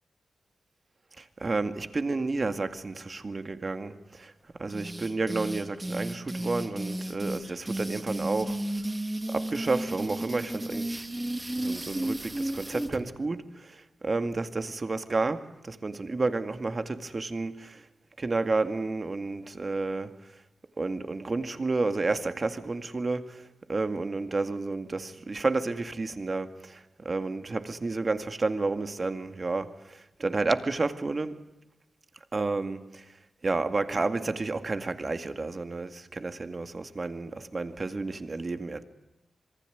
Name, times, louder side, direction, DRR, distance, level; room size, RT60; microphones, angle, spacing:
voice 1, 1.2-4.3 4.6-8.6 9.3-11.1 11.6-17.9 18.2-20.1 20.8-23.4 23.7-31.4 32.3-33.1 33.4-38.8, right 3 dB, 35° right, 2.1 m, -31 dB
sound 1, 4.7-13.0, right 1 dB, 15° right, 2.9 m, -33 dB
26.5 x 23.5 x 9.4 m
wide cardioid pair, 100°, 0 cm